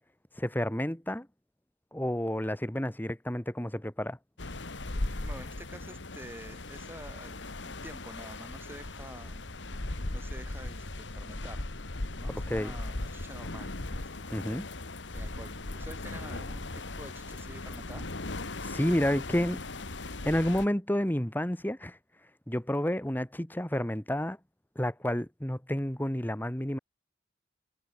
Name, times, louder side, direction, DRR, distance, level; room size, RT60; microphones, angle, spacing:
voice 1, 0.4-1.3 1.9-4.2 12.3-12.7 14.3-14.7 18.7-19.6 20.2-22.0 22.5-24.4 24.8-26.8, equal, 10° left, 1.7 m, -30 dB
sound 1, 4.4-20.7, left 2 dB, 80° left, 1.8 m, -38 dB
voice 2, 5.2-9.4 9.8-11.7 12.2-14.4 15.1-18.1, right 1 dB, 15° right, 4.6 m, -48 dB
head